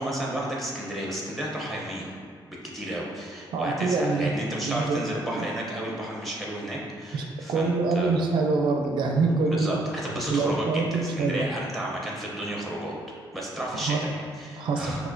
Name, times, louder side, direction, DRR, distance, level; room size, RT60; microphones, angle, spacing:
voice 1, 0.0-2.1 2.5-8.2 9.5-13.0 13.3-15.1, right 1 dB, ahead, -4 dB, 0.7 m, -32 dB
voice 2, 3.5-4.3 4.6-5.0 5.4-5.5 7.1-9.8 10.3-11.5 13.9-14.0 14.6-15.1, right 3 dB, 70° right, 2 dB, 0.4 m, -25 dB
6.2 x 2.8 x 2.6 m, 2.3 s
wide cardioid pair, 170°, 8 cm